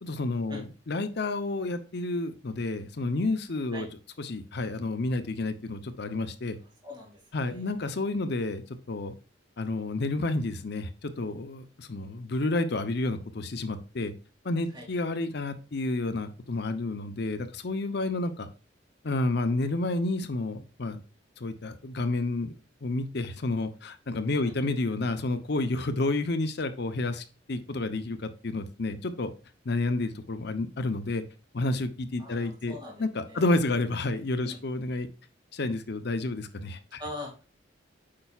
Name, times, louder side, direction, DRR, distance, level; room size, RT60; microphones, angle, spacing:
voice 1, 0.0-3.9 4.2-6.6 7.3-9.2 9.6-14.1 14.4-18.5 19.0-21.0 21.4-22.5 22.8-29.3 29.6-31.2 31.5-35.1 35.5-37.0, left 2 dB, 55° left, 10 dB, 0.7 m, -30 dB
voice 2, 6.8-7.7 14.7-14.9 24.4-24.5 32.2-33.4 34.4-34.6 37.0-37.3, left 1 dB, 20° right, -2 dB, 2.0 m, -42 dB
8.6 x 5.6 x 2.4 m, 0.35 s
head